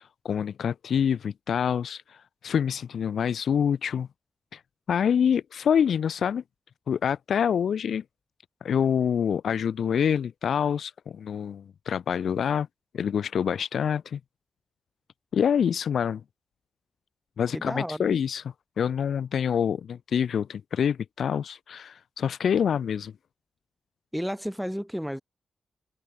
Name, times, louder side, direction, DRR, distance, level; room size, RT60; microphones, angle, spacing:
voice 1, 0.0-4.1 4.5-4.6 4.9-6.4 6.9-8.0 8.6-12.7 12.9-14.2 15.3-16.2 17.4-18.4 18.8-23.1, left 8 dB, 80° left, 0.3 m, -26 dB
voice 2, 17.5-18.1 24.1-25.2, equal, ahead, 0.5 m, -32 dB
wide cardioid pair, 105°, 0 cm